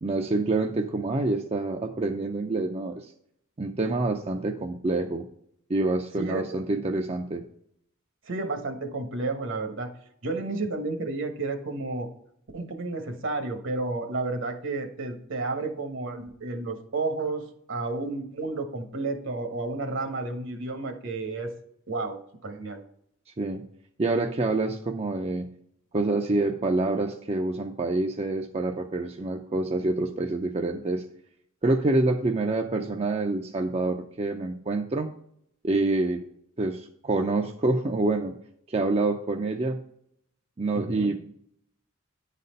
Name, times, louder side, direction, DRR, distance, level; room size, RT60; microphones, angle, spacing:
voice 1, 0.0-3.1 3.6-5.2 5.7-7.4 23.4-23.6 24.0-25.5 25.9-31.0 31.6-35.1 35.6-36.2 36.6-38.3 38.7-39.8 40.6-41.2, right 2 dB, 30° right, 3 dB, 0.5 m, -27 dB
voice 2, 8.3-9.9 10.2-12.1 12.5-21.5 21.9-22.8 40.7-41.2, right 3 dB, 65° right, 6 dB, 1.2 m, -31 dB
10.0 x 4.1 x 5.2 m, 0.71 s
head